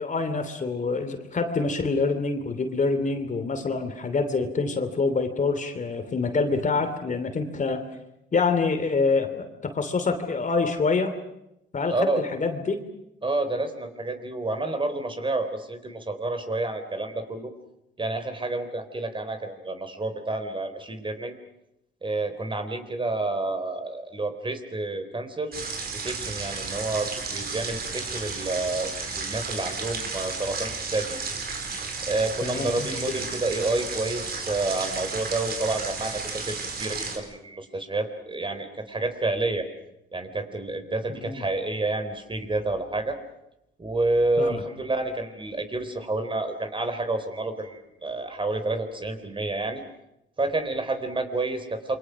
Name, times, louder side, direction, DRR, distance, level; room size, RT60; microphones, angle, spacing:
voice 1, 0.0-7.8 8.3-11.1 11.7-12.8 32.4-33.3 41.1-41.4 44.4-44.6, left 4 dB, 40° left, 8 dB, 3.1 m, -26 dB
voice 2, 11.9-12.2 13.2-17.5 18.0-21.3 22.0-25.5 26.0-31.2 32.1-39.7 40.1-43.2 43.8-49.8 50.4-52.0, right 2 dB, 25° right, 8 dB, 3.8 m, -29 dB
sound 1, 25.5-37.2, right 4 dB, 50° right, 5.0 m, -33 dB
28.0 x 24.0 x 6.3 m, 0.83 s
cardioid pair, 90°, 20 cm